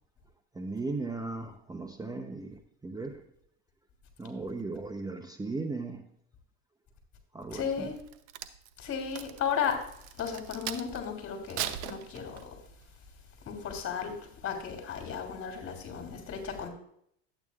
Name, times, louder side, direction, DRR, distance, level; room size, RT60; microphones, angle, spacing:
voice 1, 0.5-3.2 4.2-6.1 7.3-7.9, right 3 dB, 10° right, 0.7 m, -37 dB
voice 2, 7.5-7.9 8.8-9.8 10.2-12.4 13.5-14.1 14.4-16.7, left 7 dB, 40° left, 3.3 m, -34 dB
Crack, 8.0-11.0 11.5-12.7 13.2-13.4, right 11 dB, 85° right, 0.8 m, -39 dB
12.0 x 8.9 x 2.4 m
supercardioid pair, 90°, 33 cm